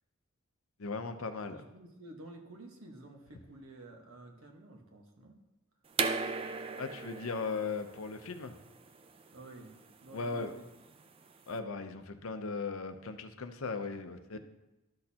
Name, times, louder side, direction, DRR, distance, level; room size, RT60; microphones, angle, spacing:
voice 1, 0.8-1.6 6.8-8.5 10.1-10.5 11.5-14.4, left 4 dB, 70° left, 8 dB, 0.7 m, -37 dB
voice 2, 1.5-5.4 9.3-9.8 10.0-10.6 14.3-14.4, right 2 dB, 75° right, 2 dB, 1.3 m, -51 dB
sound 1, 5.9-11.5, right 4 dB, 25° right, 0.4 m, -38 dB
12.0 x 6.4 x 2.9 m, 1.0 s
head